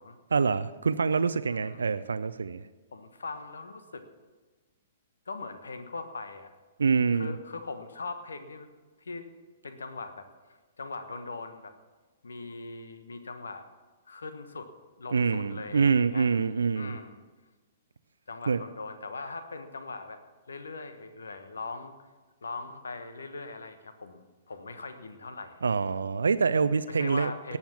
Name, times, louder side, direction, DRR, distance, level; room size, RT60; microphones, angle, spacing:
voice 1, 0.3-2.6 6.8-7.4 15.1-17.0 18.5-18.6 25.6-27.6, right 5 dB, 75° right, 13 dB, 0.5 m, -26 dB
voice 2, 1.4-1.8 2.9-4.0 5.3-6.5 7.1-8.7 9.0-9.3 9.6-11.7 12.2-13.6 14.1-14.7 15.0-16.3 16.7-17.2 18.3-20.2 20.5-21.9 22.4-25.6 27.0-27.6, left 3 dB, 75° left, 9 dB, 1.3 m, -40 dB
18.5 x 7.2 x 7.2 m, 1.3 s
figure-of-eight pair, 115°, 0 cm